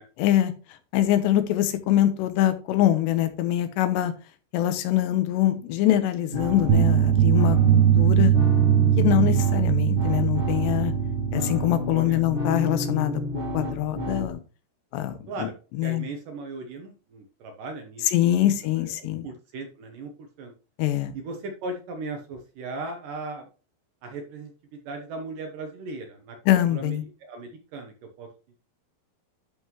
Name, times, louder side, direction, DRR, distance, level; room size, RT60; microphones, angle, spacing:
voice 1, 0.2-0.5 0.9-4.1 4.5-8.3 9.0-10.9 11.3-14.4 14.9-15.2 15.8-16.1 18.1-19.3 20.8-21.2 26.5-27.0, left 13 dB, 90° left, 10 dB, 3.1 m, -23 dB
sound 1, 6.3-14.3, left 1 dB, 40° right, 0.8 m, -30 dB
sound 2, 6.7-11.7, right 10 dB, 85° right, 3.0 m, -20 dB
voice 2, 11.9-12.2 15.3-15.5 15.8-18.5 18.8-20.1 20.4-20.5 21.1-23.5 24.0-26.4 26.7-28.3, right 3 dB, 70° right, 4 dB, 2.2 m, -37 dB
11.5 x 5.6 x 3.0 m, 0.34 s
omnidirectional pair, 4.9 m